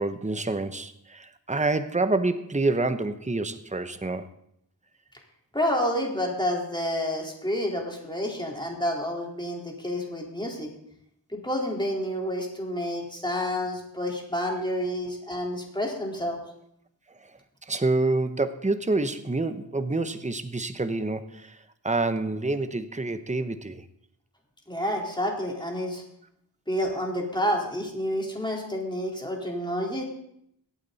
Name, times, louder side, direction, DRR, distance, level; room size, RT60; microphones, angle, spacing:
voice 1, 0.0-4.3 17.7-21.6 21.8-23.8, right 2 dB, 15° right, 10 dB, 0.8 m, -27 dB
voice 2, 5.5-10.7 11.3-16.4 24.7-26.0 26.7-30.0, equal, 10° left, -1 dB, 4.0 m, -29 dB
23.5 x 8.8 x 4.1 m, 0.74 s
wide cardioid pair, 45°, 44 cm